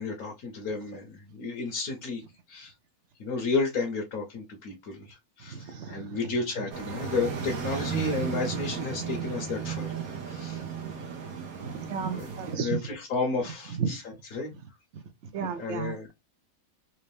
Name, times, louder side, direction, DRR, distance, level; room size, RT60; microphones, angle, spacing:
voice 1, 0.0-2.2 2.5-2.7 3.2-10.0 10.3-10.6 12.1-12.3 12.5-14.0 14.3-14.5 15.6-16.1, left 3 dB, 85° left, 1.6 m, -32 dB
voice 2, 5.5-6.2 6.6-6.7 11.6-13.0 13.7-14.0 14.9-15.0 15.3-16.1, right 6 dB, 60° right, 0.9 m, -33 dB
sound 1, 6.7-12.6, right 7 dB, 85° right, 1.4 m, -34 dB
4.3 x 2.6 x 3.3 m
omnidirectional pair, 1.5 m